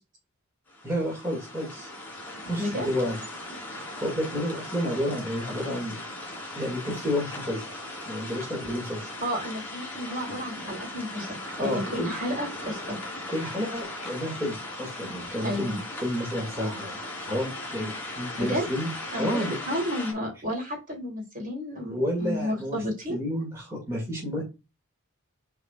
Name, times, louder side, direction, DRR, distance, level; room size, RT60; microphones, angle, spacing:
sound 1, 0.7-20.1, left 1 dB, 10° left, 3.0 m, -38 dB
voice 1, 0.8-1.9 2.4-3.2 4.0-6.0 6.5-9.1 11.2-11.3 11.6-12.1 13.3-16.9 17.2-18.9 19.2-19.5 21.9-22.8 23.1-24.4, equal, 15° right, -3 dB, 2.4 m, -30 dB
voice 2, 9.2-11.4 11.6-13.0 15.4-15.8 18.4-18.6 19.1-23.2, equal, 40° right, 0 dB, 3.6 m, -32 dB
7.7 x 4.9 x 2.4 m, 0.26 s
head